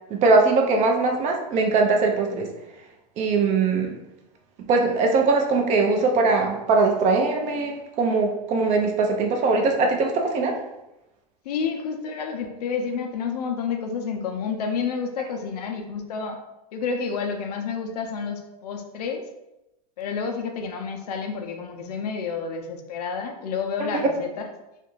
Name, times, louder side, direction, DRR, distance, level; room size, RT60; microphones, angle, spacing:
voice 1, 0.1-2.5 3.2-3.9 4.7-10.5 23.8-23.9, right 3 dB, 35° right, 2 dB, 0.5 m, -21 dB
voice 2, 11.4-16.4 16.7-19.2 20.0-24.5, left 5 dB, 75° left, 4 dB, 0.5 m, -29 dB
2.4 x 2.2 x 3.0 m, 0.93 s
hypercardioid pair, 110°, 20 cm